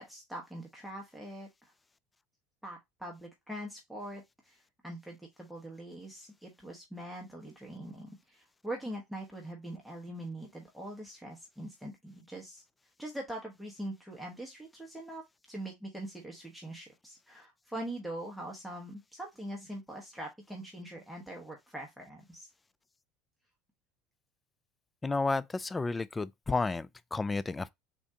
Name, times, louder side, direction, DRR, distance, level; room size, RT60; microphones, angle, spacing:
voice 1, 0.0-1.5 2.6-4.6 4.8-12.6 13.0-22.5, right 1 dB, ahead, 1.1 m, -43 dB
voice 2, 25.0-27.7, left 3 dB, 20° left, 0.3 m, -32 dB
3.7 x 2.5 x 3.3 m
hypercardioid pair, 75°, 0 cm